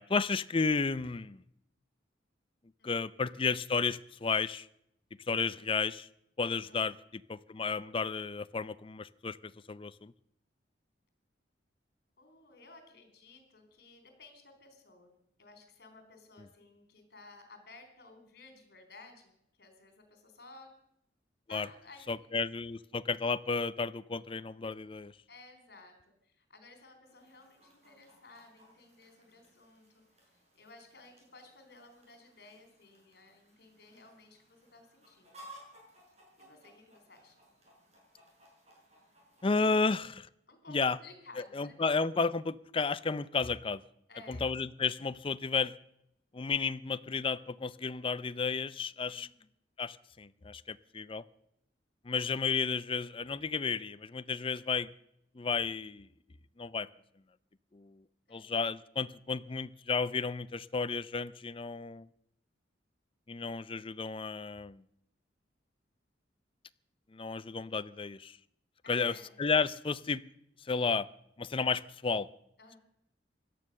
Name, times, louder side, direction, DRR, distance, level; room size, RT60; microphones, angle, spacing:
voice 1, 0.0-1.4 2.8-4.7 5.3-6.1 6.4-10.1 21.5-21.7 22.1-25.1 39.4-40.3 40.7-41.0 41.4-43.8 44.3-45.7 46.3-49.3 49.8-51.2 52.0-54.9 55.3-56.1 56.6-56.9 57.7-58.0 58.3-62.1 63.3-64.8 67.1-68.4 68.9-70.2 70.6-71.1 71.4-72.3, left 4 dB, 30° left, 15 dB, 0.5 m, -32 dB
voice 2, 12.2-19.3 19.6-20.7 21.5-22.3 25.3-26.0 26.2-30.0 30.6-35.5 36.4-37.4 40.5-41.8 44.1-44.6 49.1-49.5 58.3-58.6 68.8-69.4 72.6-72.8, left 3 dB, 55° left, 6 dB, 3.7 m, -56 dB
Chicken rooster, 27.0-40.0, right 1 dB, 35° right, 6.4 m, -59 dB
17.0 x 12.0 x 6.6 m, 0.75 s
head